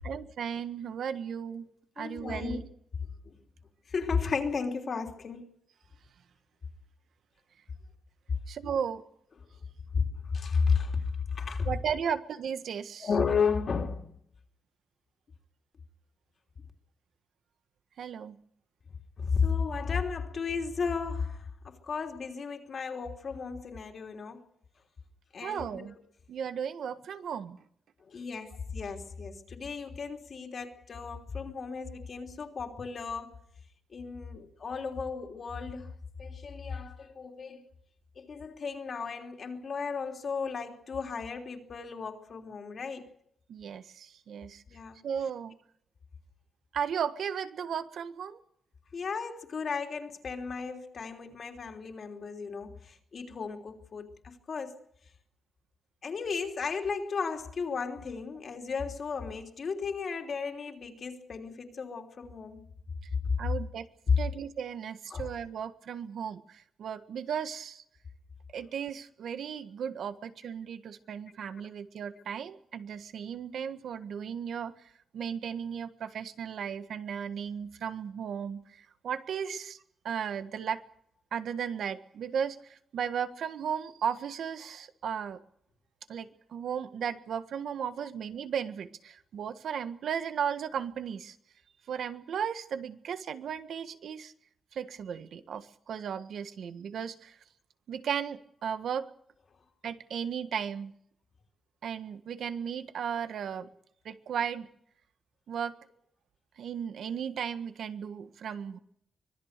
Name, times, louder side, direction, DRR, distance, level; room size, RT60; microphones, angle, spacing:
voice 1, 0.0-1.6 2.0-2.6 8.5-9.0 11.6-13.1 18.0-18.4 25.4-25.9 26.3-27.6 43.5-44.6 45.0-45.5 46.7-48.4 63.4-63.9 64.2-67.8 68.5-80.8 81.3-85.4 86.1-91.4 91.9-94.3 94.7-97.4 97.9-99.1 99.8-100.9 101.8-103.7 104.0-104.7 105.5-105.8 106.6-108.8, right 7 dB, 80° right, 1.6 m, -35 dB
voice 2, 2.0-2.6 3.2-3.3 3.9-5.5 10.3-11.0 11.3-11.7 13.0-14.1 19.2-24.4 25.3-25.9 28.1-33.3 33.9-35.9 36.2-37.6 38.2-43.0 44.7-45.0 48.9-54.8 56.0-62.6 65.1-65.3, left 5 dB, 45° left, 3.3 m, -34 dB
25.0 x 20.0 x 6.7 m
wide cardioid pair, 160°, 0 cm